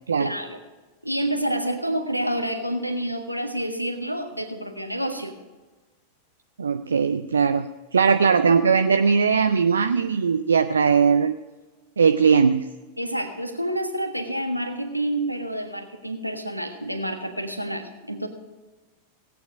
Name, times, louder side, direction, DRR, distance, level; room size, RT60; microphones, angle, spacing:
voice 1, 0.2-0.6 1.0-5.3 13.0-18.3, right 1 dB, 90° right, 5 dB, 1.4 m, -28 dB
voice 2, 6.6-7.7 7.9-11.4 12.0-12.7, right 6 dB, 70° right, 10 dB, 0.4 m, -19 dB
17.0 x 8.8 x 5.0 m, 1.2 s
figure-of-eight pair, 90°, 0 cm